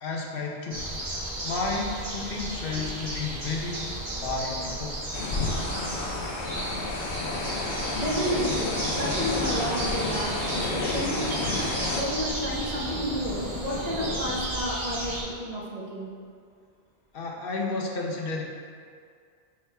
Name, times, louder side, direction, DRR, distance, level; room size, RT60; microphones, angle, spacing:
voice 1, 0.0-1.0 1.4-5.0 17.1-18.4, left 3 dB, 60° left, 0 dB, 1.0 m, -32 dB
sound 1, 0.7-15.2, right 1 dB, 65° right, 2.2 m, -34 dB
sound 2, 5.1-12.0, left 3 dB, 80° left, 1.1 m, -30 dB
voice 2, 7.5-11.3 11.9-16.1, equal, 40° right, -5 dB, 1.3 m, -31 dB
sound 3, 8.7-14.4, equal, 25° left, 0.9 m, -39 dB
8.2 x 4.4 x 3.5 m, 2.1 s
omnidirectional pair, 1.1 m